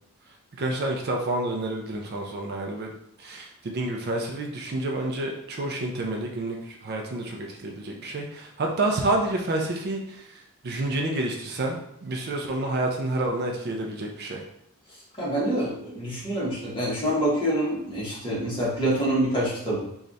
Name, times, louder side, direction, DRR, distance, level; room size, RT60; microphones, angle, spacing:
voice 1, 0.6-2.9 3.2-10.2 10.6-14.4, right 2 dB, 45° right, 1 dB, 0.4 m, -29 dB
voice 2, 15.2-19.8, right 1 dB, 20° left, -6 dB, 1.2 m, -26 dB
3.2 x 2.4 x 3.9 m, 0.76 s
head